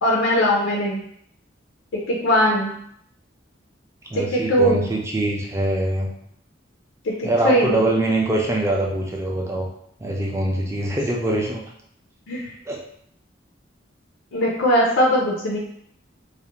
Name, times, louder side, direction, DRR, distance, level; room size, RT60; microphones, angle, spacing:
voice 1, 0.0-1.0 1.9-2.8 4.1-4.8 7.0-7.8 12.3-12.5 14.3-15.6, equal, 80° left, -2 dB, 0.4 m, -20 dB
voice 2, 4.1-6.1 7.2-9.7 10.0-11.6 12.7-12.8, right 1 dB, 15° right, -2 dB, 0.4 m, -23 dB
2.4 x 2.0 x 2.8 m, 0.69 s
head